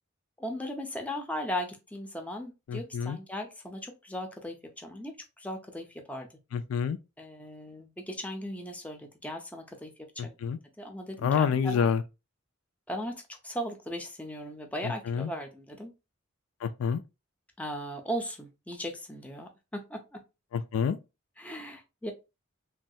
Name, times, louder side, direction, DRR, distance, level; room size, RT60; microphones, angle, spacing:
voice 1, 0.4-6.3 7.2-9.9 10.2-10.4 10.8-11.9 12.9-15.9 17.6-20.2 21.4-22.1, equal, 5° left, 0.5 m, -37 dB
voice 2, 2.7-3.2 6.5-7.0 10.2-10.6 11.2-12.0 14.8-15.3 16.6-17.0 20.5-21.0, left 7 dB, 75° left, 0.3 m, -28 dB
3.1 x 2.2 x 2.7 m
head